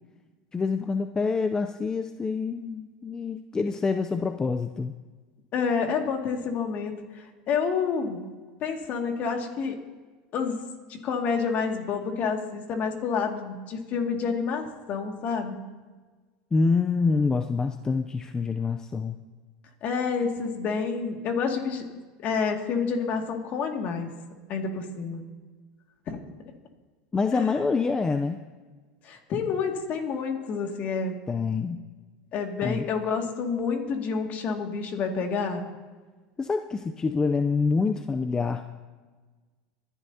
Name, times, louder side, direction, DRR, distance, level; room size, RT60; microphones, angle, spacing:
voice 1, 0.5-4.9 16.5-19.2 27.1-28.4 31.3-31.9 32.6-32.9 36.4-38.6, left 4 dB, 15° left, 7 dB, 0.5 m, -26 dB
voice 2, 5.5-8.3 8.6-9.8 10.3-10.6 10.9-14.6 14.9-15.6 19.8-21.9 22.2-24.1 24.5-25.2 26.1-26.2 27.3-27.5 29.0-31.1 32.3-35.6, left 5 dB, 45° left, 3 dB, 2.2 m, -28 dB
25.5 x 11.0 x 2.8 m, 1.4 s
supercardioid pair, 110°, 4 cm